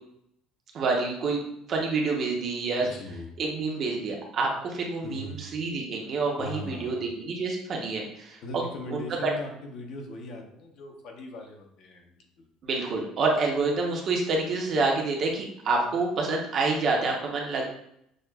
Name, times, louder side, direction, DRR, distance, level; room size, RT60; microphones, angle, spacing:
voice 1, 0.7-1.4 1.7-2.9 3.4-8.6 8.9-9.3 12.6-17.7, right 3 dB, 35° right, 0 dB, 0.8 m, -28 dB
voice 2, 2.8-3.3 5.0-5.4 6.4-7.0 8.4-12.1 12.4-12.5, left 2 dB, 45° left, 2 dB, 0.7 m, -39 dB
6.3 x 2.4 x 2.3 m, 0.75 s
cardioid pair, 175°, 0 cm